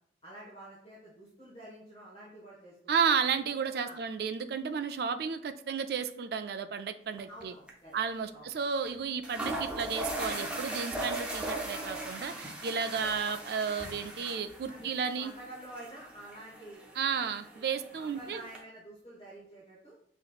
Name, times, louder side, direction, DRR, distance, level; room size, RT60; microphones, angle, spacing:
voice 1, 0.2-3.1 3.8-4.0 7.3-8.0 8.3-8.5 12.9-13.1 14.7-16.8 17.1-17.6 17.9-19.9, right 1 dB, 30° left, -7 dB, 1.2 m, -49 dB
voice 2, 2.9-7.5 7.9-15.3 17.0-18.4, right 6 dB, 60° right, 9 dB, 0.3 m, -32 dB
sound 1, 7.2-7.4 7.7-7.8 8.8-8.9 9.2-18.6, right 1 dB, 5° right, 0.6 m, -39 dB
5.8 x 2.9 x 2.3 m, 0.67 s
head